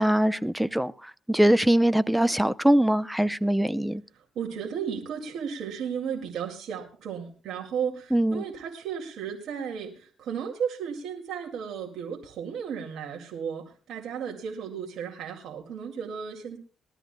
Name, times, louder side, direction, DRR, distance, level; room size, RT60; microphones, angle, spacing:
voice 1, 0.0-4.0 8.1-8.4, right 1 dB, 5° right, 0.6 m, -22 dB
voice 2, 4.1-16.6, right 7 dB, 70° right, 2.2 m, -34 dB
21.0 x 13.0 x 2.2 m
cardioid pair, 90°, 0 cm